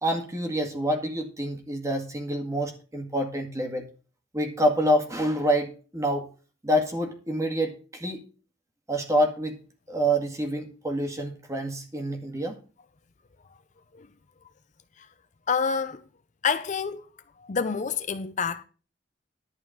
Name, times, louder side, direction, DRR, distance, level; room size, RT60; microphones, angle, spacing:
voice 1, 0.0-3.8 4.3-6.3 6.6-8.2 8.9-9.6 9.9-12.5, equal, 15° right, 2.0 m, -27 dB
voice 2, 15.5-16.0 16.4-17.1 17.4-18.6, left 6 dB, 40° left, 0.5 m, -28 dB
11.5 x 4.7 x 7.3 m
head